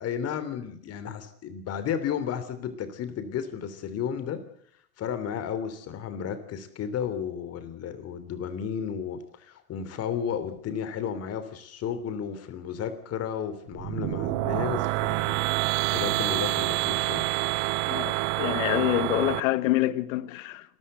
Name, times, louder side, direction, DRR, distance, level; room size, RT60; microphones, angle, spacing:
voice 1, 0.0-4.4 5.0-15.4 15.7-17.3, left 8 dB, 35° left, 3.2 m, -33 dB
sound 1, 13.7-19.4, right 20 dB, 45° right, 0.8 m, -27 dB
voice 2, 17.9-20.8, left 16 dB, 60° left, 1.5 m, -27 dB
28.0 x 13.0 x 8.0 m
hypercardioid pair, 120°, 44 cm